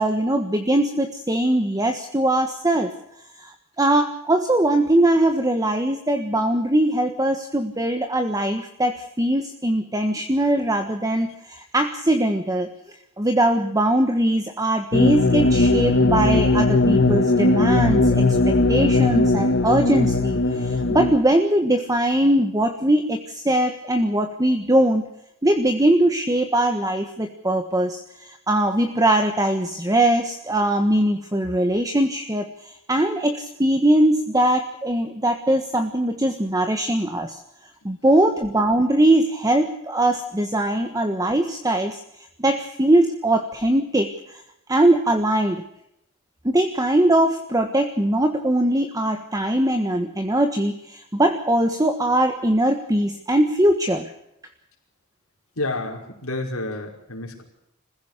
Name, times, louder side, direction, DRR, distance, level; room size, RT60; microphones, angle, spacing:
voice 1, 0.0-2.9 3.4-12.7 13.2-25.1 25.4-37.4 37.8-42.0 42.4-44.4 44.7-45.6 46.4-54.1, right 1 dB, 15° right, 6 dB, 1.5 m, -21 dB
sound 1, 14.9-21.1, left 2 dB, 55° left, 1.3 m, -19 dB
voice 2, 55.6-57.4, left 2 dB, 80° left, 2 dB, 5.3 m, -30 dB
26.5 x 16.0 x 6.7 m, 0.81 s
head